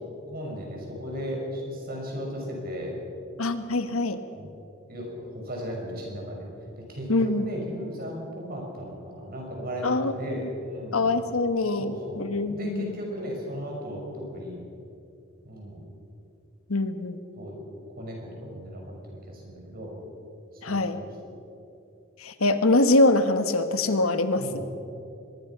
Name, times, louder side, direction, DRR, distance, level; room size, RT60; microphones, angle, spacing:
voice 1, 0.3-2.9 4.3-4.5 4.9-6.5 6.9-11.1 11.8-14.6 15.4-15.8 17.4-17.6 18.0-18.8 19.1-19.9 20.7-21.1 24.4-24.7, equal, 45° right, 0 dB, 6.0 m, -36 dB
voice 2, 3.4-4.2 7.1-7.5 9.8-10.1 10.4-10.5 10.9-13.0 16.7-17.2 20.6-21.0 22.2-24.4, left 2 dB, 80° left, 9 dB, 1.4 m, -24 dB
23.5 x 21.0 x 5.9 m, 2.7 s
head